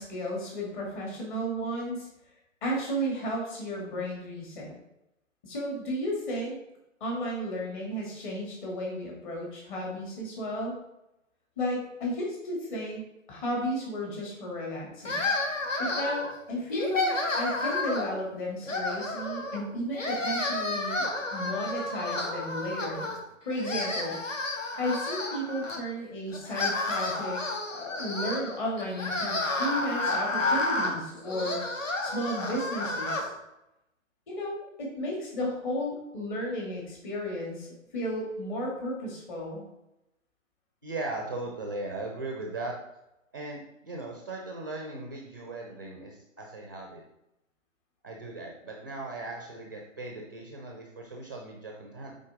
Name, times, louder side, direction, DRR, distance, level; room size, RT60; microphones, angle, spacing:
voice 1, 0.0-2.1 2.6-4.8 5.4-6.5 7.0-10.7 11.6-13.0 13.3-15.3 15.8-21.1 21.3-23.1 23.4-24.2 24.8-27.4 27.7-31.6 32.0-33.2 34.3-37.7 37.9-39.7, equal, 35° left, -3 dB, 2.5 m, -33 dB
sound 1, 15.0-16.3 16.7-18.2 18.6-19.6 19.9-23.2 23.5-25.8 26.3-33.3, left 2 dB, 70° left, 1.3 m, -31 dB
voice 2, 40.8-42.7 43.3-47.1 48.0-52.2, right 2 dB, 15° right, 0 dB, 0.4 m, -38 dB
8.8 x 3.8 x 3.7 m, 0.88 s
figure-of-eight pair, 125°, 40 cm